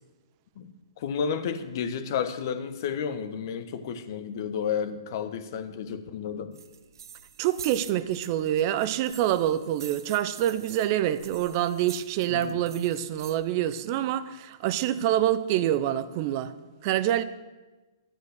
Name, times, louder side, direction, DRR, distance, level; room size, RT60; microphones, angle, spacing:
voice 1, 0.6-6.6 12.3-12.6, left 7 dB, 55° left, 1.2 m, -32 dB
sound 1, 6.5-13.4, right 8 dB, 65° right, 1.0 m, -47 dB
voice 2, 7.4-16.5 16.8-17.2, right 12 dB, 40° right, 0.7 m, -26 dB
12.0 x 9.4 x 6.5 m
hypercardioid pair, 125°, 2 cm